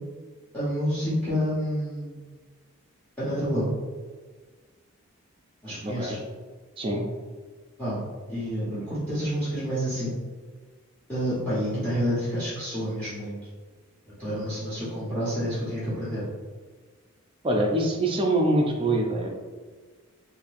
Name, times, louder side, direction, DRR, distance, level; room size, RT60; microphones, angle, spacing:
voice 1, 0.5-2.2 3.2-3.7 5.6-6.2 7.8-8.0 8.3-10.2 11.1-13.5 14.2-16.2, equal, 5° left, -10 dB, 0.9 m, -28 dB
voice 2, 5.8-6.2 6.8-7.1 17.4-19.3, right 1 dB, 25° right, 1 dB, 0.4 m, -24 dB
4.0 x 2.6 x 2.5 m, 1.4 s
head